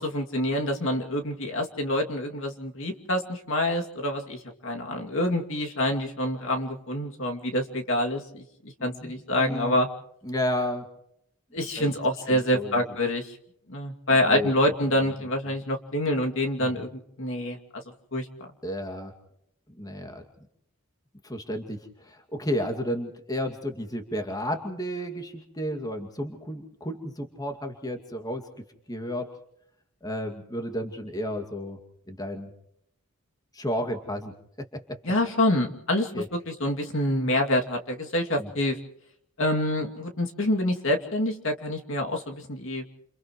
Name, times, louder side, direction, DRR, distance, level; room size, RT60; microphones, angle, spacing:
voice 1, 0.0-9.9 11.5-13.3 13.7-17.6 18.1-18.3 35.0-38.8 39.4-42.8, left 1 dB, 60° left, 2 dB, 2.6 m, -27 dB
voice 2, 8.8-9.8 10.2-10.9 11.8-11.9 12.3-12.8 14.3-14.5 15.0-15.1 16.6-16.9 18.6-19.1 19.8-20.2 21.2-28.5 28.9-29.3 30.0-31.8 32.1-32.5 33.5-34.3 34.6-35.0 36.1-36.3 38.4-38.5, equal, 15° left, 5 dB, 2.3 m, -32 dB
30.0 x 29.0 x 3.2 m, 0.74 s
head